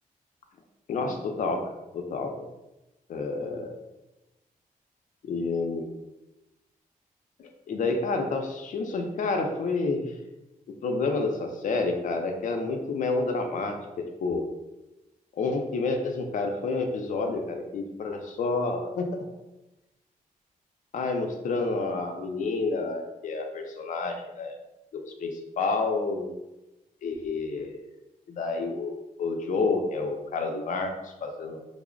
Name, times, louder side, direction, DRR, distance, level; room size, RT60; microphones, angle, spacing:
voice 1, 0.9-1.7 1.9-2.5 3.1-3.7 5.2-5.9 7.4-10.1 10.8-14.5 15.3-19.2 20.9-24.5 24.9-26.3 27.0-27.7 28.3-31.6, left 3 dB, 60° left, 3 dB, 0.5 m, -29 dB
3.3 x 2.0 x 3.7 m, 0.98 s
wide cardioid pair, 160°, 15 cm